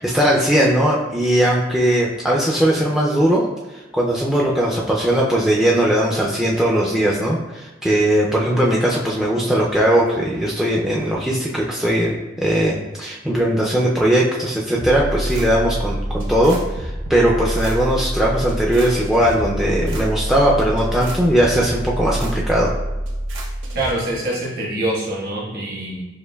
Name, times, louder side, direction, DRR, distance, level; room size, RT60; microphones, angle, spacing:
voice 1, 0.0-3.5 3.9-22.7, right 1 dB, ahead, -3 dB, 0.3 m, -19 dB
sound 1, 14.8-23.9, right 1 dB, 90° right, 0.7 m, -26 dB
voice 2, 23.7-26.0, right 1 dB, 50° right, -4 dB, 1.1 m, -25 dB
6.3 x 2.5 x 2.2 m, 1.1 s
head